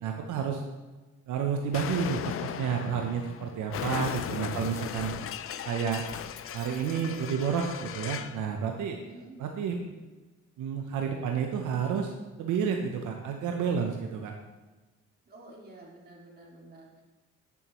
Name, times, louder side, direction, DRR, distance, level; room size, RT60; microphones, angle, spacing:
voice 1, 0.0-0.6 1.3-5.1 5.6-6.0 6.5-9.0 9.4-9.8 10.6-12.1 12.4-14.3, right 7 dB, 80° right, 3 dB, 0.8 m, -30 dB
Explosion, 1.7-8.4, left 9 dB, 45° left, 0.4 m, -37 dB
voice 2, 4.3-5.3 9.0-9.4 15.3-17.0, right 2 dB, 30° right, -3 dB, 2.4 m, -51 dB
8.5 x 7.1 x 3.0 m, 1.2 s
cardioid pair, 90°, 30 cm